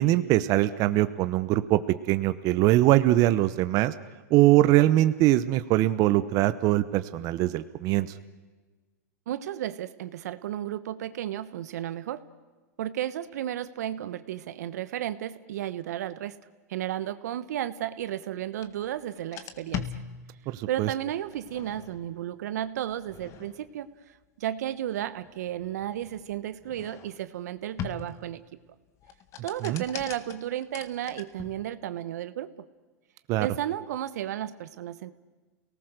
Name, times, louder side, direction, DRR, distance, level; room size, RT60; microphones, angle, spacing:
voice 1, 0.0-1.8 2.1-3.9 4.3-8.1 20.5-20.9 29.6-29.8 33.3-33.5, right 15 dB, 40° right, 12 dB, 0.9 m, -22 dB
voice 2, 9.3-12.2 12.8-16.3 16.7-19.9 20.7-23.9 24.4-28.4 29.4-32.5 33.4-35.1, right 12 dB, 75° right, 14 dB, 1.1 m, -33 dB
sound 1, 18.6-18.7 19.2-20.7 21.3-22.2 22.9-23.8 25.0-27.3 27.8-28.4 29.0-31.7, left 8 dB, 35° left, 1.7 m, -41 dB
29.0 x 19.0 x 6.6 m, 1.3 s
hypercardioid pair, 130°, 9 cm